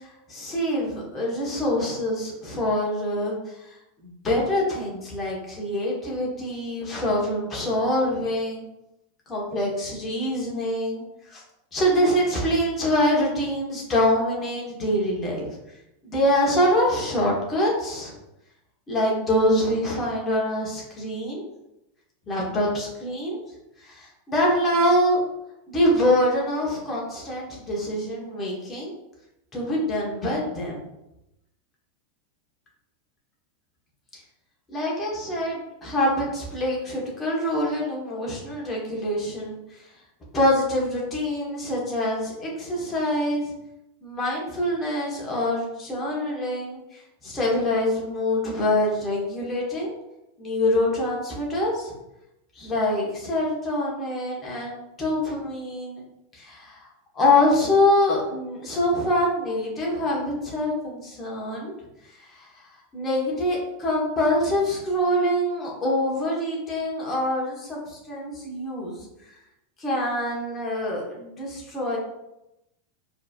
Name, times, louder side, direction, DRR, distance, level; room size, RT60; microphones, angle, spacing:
voice 1, 0.3-3.4 4.0-8.6 9.3-11.0 11.3-11.4 11.7-15.5 16.0-18.1 18.9-21.4 22.3-23.4 23.8-25.2 25.7-28.9 29.5-30.8 34.7-39.6 40.3-43.5 44.0-49.9 50.4-51.9 52.6-56.0 56.3-56.8 57.1-61.7 62.3-62.4 62.9-69.0 69.8-72.0, left 1 dB, 25° left, -3 dB, 1.3 m, -25 dB
4.5 x 3.0 x 2.5 m, 0.90 s
figure-of-eight pair, 85°, 0 cm